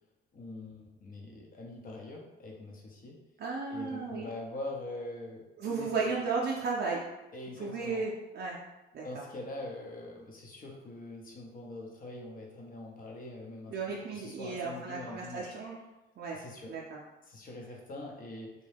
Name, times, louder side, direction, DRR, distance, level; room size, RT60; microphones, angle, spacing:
voice 1, 0.3-3.2 3.7-6.2 7.3-8.0 9.0-15.5 16.3-16.7 17.3-18.5, left 2 dB, 45° left, 0 dB, 0.8 m, -43 dB
voice 2, 3.4-4.3 5.6-7.0 7.6-8.6 8.9-9.2 13.7-15.8 16.2-16.4 16.7-17.0, right 4 dB, 55° right, -3 dB, 0.5 m, -34 dB
2.7 x 2.2 x 3.4 m, 1.0 s
cardioid pair, 90°, 20 cm